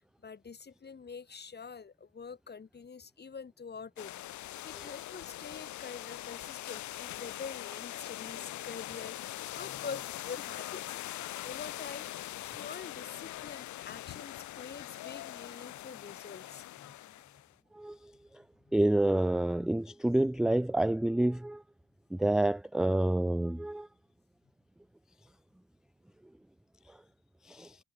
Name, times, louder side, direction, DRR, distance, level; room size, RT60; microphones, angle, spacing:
voice 1, 0.2-4.1 4.6-17.0 17.3-17.4 18.7-18.8, left 5 dB, 35° left, 2.4 m, -46 dB
sound 1, 4.0-17.5, left 14 dB, 70° left, 0.8 m, -42 dB
voice 2, 18.7-21.6 22.1-23.9 27.5-27.8, right 1 dB, ahead, 0.4 m, -28 dB
cardioid pair, 90°, 30 cm